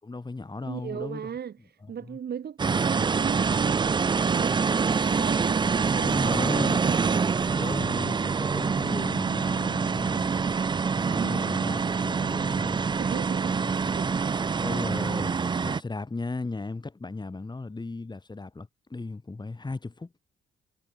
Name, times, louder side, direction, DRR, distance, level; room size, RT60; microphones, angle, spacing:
voice 1, 0.0-1.3 2.0-2.2 5.9-6.8 7.4-10.3 10.9-12.9 13.6-13.9 14.6-20.1, left 3 dB, 20° left, 7.9 m, -36 dB
voice 2, 0.6-7.2 11.0-11.6 13.0-13.6 13.9-14.4, right 8 dB, 55° right, 4.0 m, -37 dB
sound 1, 2.6-15.8, right 5 dB, 25° right, 0.5 m, -26 dB
cardioid pair, 90°, 20 cm